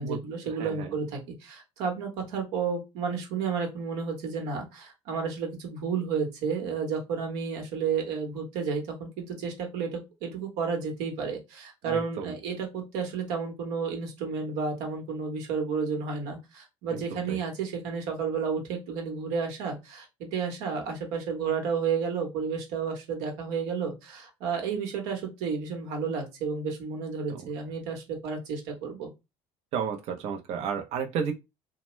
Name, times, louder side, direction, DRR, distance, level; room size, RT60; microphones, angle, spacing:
voice 1, 0.0-29.1, right 5 dB, 80° right, 1.2 m, -32 dB
voice 2, 0.6-0.9 11.8-12.3 16.9-17.0 17.3-17.4 27.3-27.5 29.7-31.3, right 7 dB, 65° right, 0.7 m, -32 dB
2.8 x 2.2 x 3.1 m
supercardioid pair, 105°, 12 cm